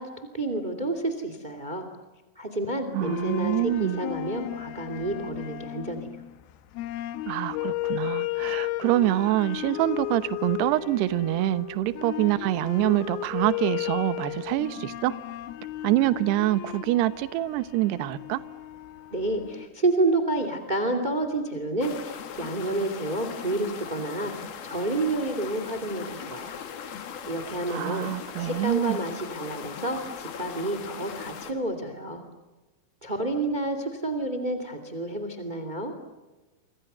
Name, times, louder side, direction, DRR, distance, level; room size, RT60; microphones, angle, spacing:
voice 1, 0.0-1.9 2.3-6.1 19.1-26.6 27.2-28.1 28.4-32.2 33.0-35.9, right 2 dB, 35° right, 7 dB, 0.7 m, -29 dB
voice 2, 2.9-4.0 7.3-15.2 15.8-18.4 27.7-29.0, right 15 dB, 75° right, 13 dB, 2.6 m, -25 dB
sound 1, 3.0-19.7, left 15 dB, 85° left, 2.2 m, -34 dB
sound 2, 21.8-31.5, left 8 dB, 55° left, 3.6 m, -39 dB
29.5 x 26.0 x 6.8 m, 1.2 s
omnidirectional pair, 6.0 m